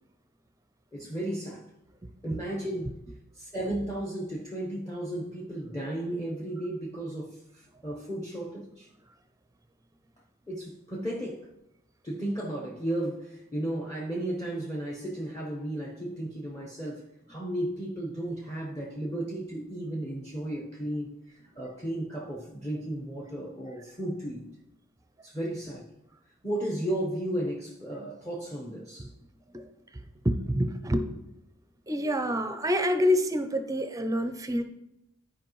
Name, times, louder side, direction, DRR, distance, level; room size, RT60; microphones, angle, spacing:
voice 1, 0.9-1.6 2.2-2.9 3.3-8.9 10.5-11.5 12.0-21.1 21.6-24.4 25.2-25.9 26.4-29.1, right 1 dB, 15° left, 1.0 m, -34 dB
voice 2, 30.2-31.1 31.9-34.6, equal, 15° right, 0.6 m, -27 dB
13.5 x 4.9 x 3.1 m
head